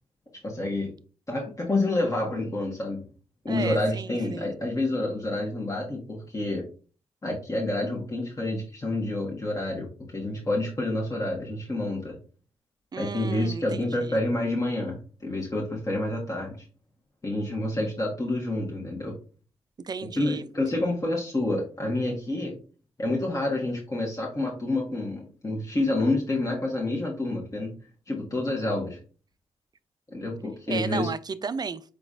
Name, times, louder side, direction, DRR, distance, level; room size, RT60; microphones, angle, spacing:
voice 1, 0.4-0.9 1.3-3.0 3.4-6.6 7.2-12.2 13.0-16.7 17.2-19.1 20.2-22.5 23.0-27.7 28.1-29.0 30.1-31.1, left 2 dB, 30° left, -2 dB, 1.3 m, -28 dB
voice 2, 3.5-4.5 12.9-14.2 19.8-20.4 30.7-31.8, right 5 dB, 35° right, 14 dB, 0.4 m, -34 dB
5.0 x 3.8 x 2.5 m, 0.38 s
supercardioid pair, 55°, 11 cm